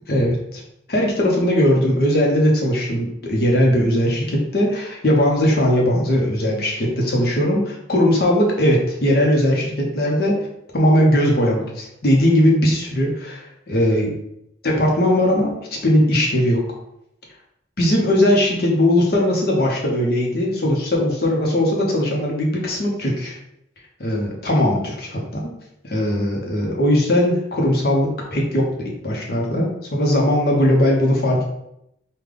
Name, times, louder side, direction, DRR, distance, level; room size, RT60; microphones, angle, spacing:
voice 1, 0.1-0.6 0.9-10.4 10.7-14.1 14.6-15.5 15.8-16.6 17.8-23.4 24.0-25.5 25.8-31.4, left 1 dB, 55° left, -1 dB, 0.8 m, -19 dB
3.3 x 2.2 x 3.7 m, 0.80 s
head